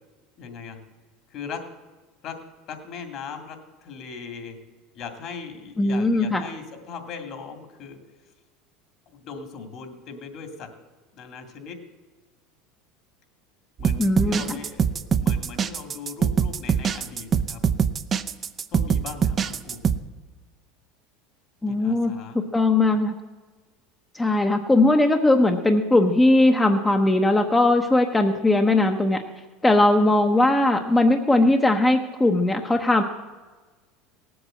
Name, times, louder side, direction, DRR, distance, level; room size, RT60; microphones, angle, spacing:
voice 1, 0.4-0.8 1.3-1.6 2.2-2.4 2.7-4.6 4.9-8.0 9.1-10.7 11.1-11.8 13.8-17.6 18.7-19.8 21.7-22.4, left 5 dB, 50° left, 6 dB, 2.4 m, -39 dB
voice 2, 5.8-6.4 14.0-14.6 21.6-22.1 22.5-23.1 24.1-29.2 29.6-33.0, left 2 dB, 10° left, 4 dB, 0.9 m, -19 dB
sound 1, 13.8-20.0, right 7 dB, 30° right, 0.6 m, -23 dB
17.5 x 7.9 x 7.7 m, 1.3 s
supercardioid pair, 115°, 0 cm